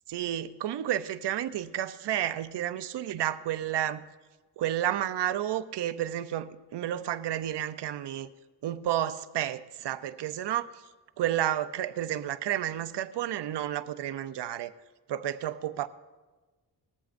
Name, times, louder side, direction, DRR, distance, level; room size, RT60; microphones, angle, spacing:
voice 1, 0.1-4.0 4.6-8.3 8.6-10.7 11.2-14.7 15.1-15.9, right 11 dB, 70° right, 0.6 m, -31 dB
19.5 x 14.0 x 2.6 m
wide cardioid pair, 165°, 42 cm